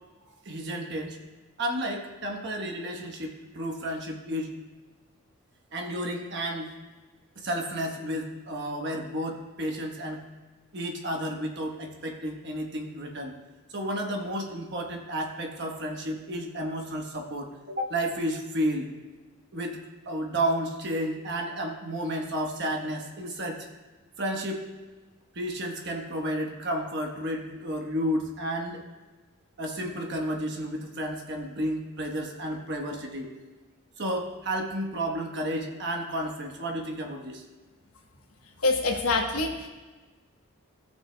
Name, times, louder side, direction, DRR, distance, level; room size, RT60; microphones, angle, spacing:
voice 1, 0.4-1.2 1.6-4.5 5.7-6.7 7.4-10.2 10.7-13.3 13.7-18.9 19.5-19.8 20.1-23.7 24.2-24.7 25.3-28.8 29.6-33.3 34.0-37.4, right 1 dB, 55° right, 2 dB, 1.2 m, -32 dB
voice 2, 38.6-39.7, left 3 dB, 85° left, 2 dB, 1.1 m, -25 dB
15.0 x 6.3 x 2.3 m, 1.3 s
head